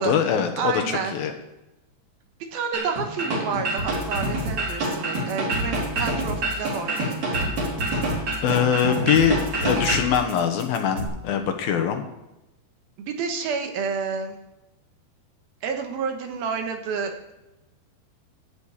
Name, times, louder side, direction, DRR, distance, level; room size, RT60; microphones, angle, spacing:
voice 1, 0.0-1.3 8.4-12.0, left 8 dB, 70° left, 6 dB, 2.7 m, -23 dB
voice 2, 0.6-1.2 2.5-7.5 13.0-14.4 15.6-17.3, right 5 dB, 70° right, 4 dB, 2.9 m, -29 dB
sound 1, 2.7-10.1, right 2 dB, 45° right, 5.0 m, -27 dB
sound 2, 3.8-11.0, equal, 30° right, 1.9 m, -32 dB
14.5 x 6.1 x 8.6 m, 0.96 s
omnidirectional pair, 4.7 m